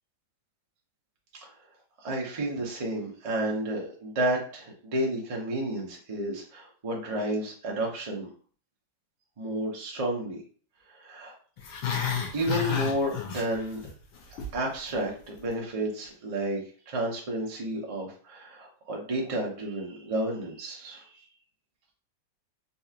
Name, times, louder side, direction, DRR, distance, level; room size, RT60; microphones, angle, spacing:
voice 1, 2.0-8.3 9.4-10.4 10.9-11.3 12.3-13.8 14.5-16.6 16.9-21.1, right 1 dB, 60° right, -1 dB, 0.3 m, -31 dB
Growling, 11.6-13.9 14.2-14.6 14.9-15.0, left 7 dB, 90° left, 1.5 m, -31 dB
4.1 x 2.4 x 2.8 m, 0.43 s
omnidirectional pair, 2.1 m